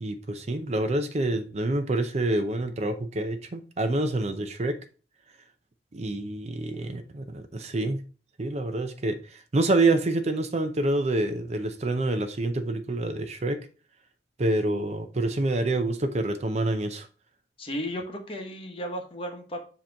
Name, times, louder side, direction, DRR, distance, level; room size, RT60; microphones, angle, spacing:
voice 1, 0.0-4.8 5.9-8.0 8.4-13.6 14.4-17.1, right 2 dB, 40° right, 0.5 m, -27 dB
voice 2, 17.6-19.7, equal, 30° left, 1.0 m, -34 dB
7.4 x 2.9 x 4.5 m
head